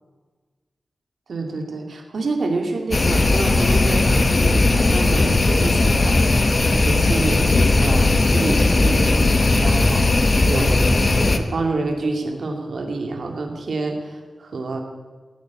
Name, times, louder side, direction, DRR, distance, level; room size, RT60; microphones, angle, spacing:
voice 1, 1.3-6.2 6.7-14.8, right 3 dB, 70° right, 3 dB, 2.4 m, -28 dB
sound 1, 2.9-11.4, left 2 dB, 40° left, 1.1 m, -17 dB
16.5 x 9.2 x 8.4 m, 1.4 s
wide cardioid pair, 105°, 0 cm